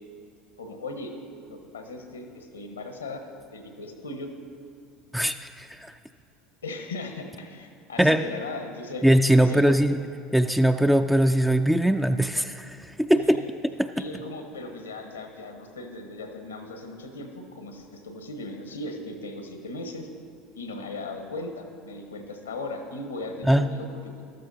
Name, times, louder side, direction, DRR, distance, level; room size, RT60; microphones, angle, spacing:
voice 1, 0.6-1.1 1.5-3.2 3.5-4.3 6.6-9.8 13.1-13.4 14.0-20.1 20.5-24.2, left 2 dB, 90° left, 6 dB, 1.0 m, -38 dB
voice 2, 5.1-6.0 8.0-8.2 9.0-10.0 10.3-13.4 13.8-14.0 23.4-23.7, right 1 dB, 5° right, 7 dB, 0.3 m, -21 dB
14.5 x 12.5 x 2.7 m, 2.5 s
hypercardioid pair, 75°, 0 cm